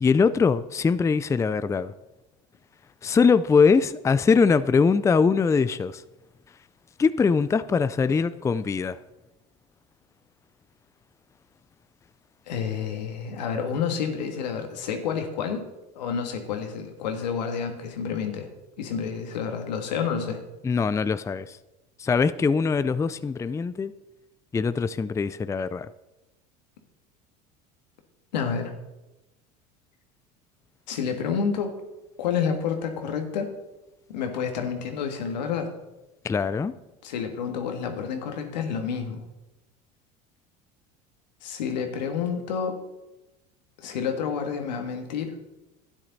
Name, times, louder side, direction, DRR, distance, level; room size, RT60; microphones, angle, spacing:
voice 1, 0.0-1.9 3.0-6.0 7.0-9.0 20.6-21.4 22.0-23.9 24.5-25.9 36.2-36.7, left 5 dB, 15° left, 0.4 m, -22 dB
voice 2, 12.5-15.7 16.0-18.5 18.8-20.4 28.3-28.7 30.9-31.8 32.2-33.5 34.1-35.7 37.0-39.2 41.4-42.8 43.8-45.4, left 6 dB, 90° left, 1.7 m, -29 dB
12.0 x 10.0 x 4.1 m
hypercardioid pair, 90°, 21 cm